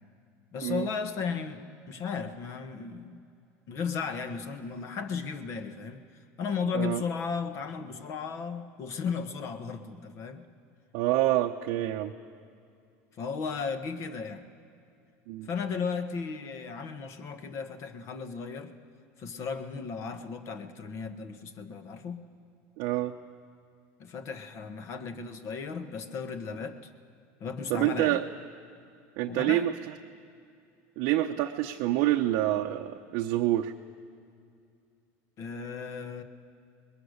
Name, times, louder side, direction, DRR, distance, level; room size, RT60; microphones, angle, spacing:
voice 1, 0.5-3.2 3.7-6.0 6.4-10.4 13.2-14.5 15.4-18.7 19.2-22.2 24.0-26.8 27.4-28.2 29.3-29.6 35.4-36.2, left 5 dB, 45° left, 8 dB, 1.3 m, -35 dB
voice 2, 10.9-12.1 15.3-15.5 22.8-23.1 27.7-28.2 29.2-29.7 31.0-33.7, right 14 dB, 65° right, 2 dB, 0.8 m, -27 dB
25.0 x 21.0 x 6.6 m, 2.4 s
cardioid pair, 145°, 7 cm